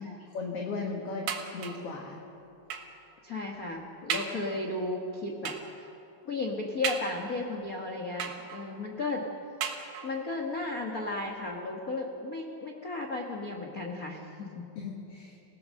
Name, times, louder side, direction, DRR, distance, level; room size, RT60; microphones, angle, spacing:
voice 1, 0.3-2.2 14.8-15.4, left 4 dB, 55° left, 1 dB, 2.0 m, -36 dB
sound 1, 1.3-1.9 2.7-3.0 3.6-3.7 4.1-4.5 5.5-5.8 6.8-7.5 8.2-8.8 9.6-10.3 11.1-11.2 11.5-11.6, right 7 dB, 60° right, 2.4 m, -36 dB
voice 2, 3.2-5.9 6.2-9.3 10.0-14.7, left 2 dB, 70° left, 1 dB, 0.8 m, -34 dB
28.0 x 17.0 x 6.4 m, 2.8 s
omnidirectional pair, 4.2 m